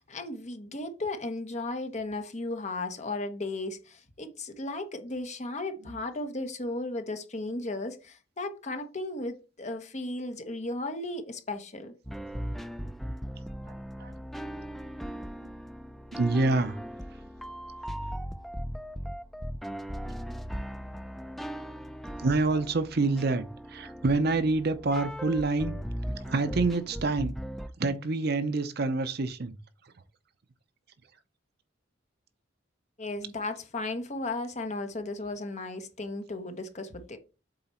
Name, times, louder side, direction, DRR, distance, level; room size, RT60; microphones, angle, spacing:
voice 1, 0.0-11.9 33.0-37.2, left 2 dB, 35° left, 1.0 m, -35 dB
sound 1, 12.0-27.7, equal, ahead, 0.3 m, -38 dB
voice 2, 16.1-16.8 22.2-25.8 26.2-27.3 27.8-29.5, right 3 dB, 55° right, 0.7 m, -27 dB
7.8 x 4.0 x 4.3 m
head